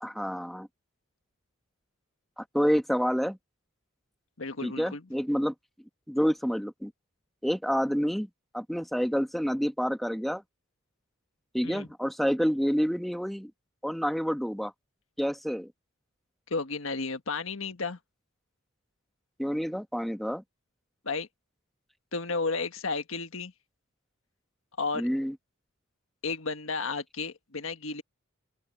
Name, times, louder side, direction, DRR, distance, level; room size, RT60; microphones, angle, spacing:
voice 1, 0.0-0.7 2.4-3.4 4.6-5.5 6.1-6.9 7.4-8.3 8.5-10.4 11.5-13.5 13.8-14.7 15.2-15.7 19.4-20.4 25.0-25.3, equal, ahead, 1.5 m, -28 dB
voice 2, 4.4-5.0 11.6-11.9 16.5-18.0 21.0-21.3 22.1-23.5 24.8-25.1 26.2-28.0, left 4 dB, 75° left, 1.5 m, -32 dB
open air
head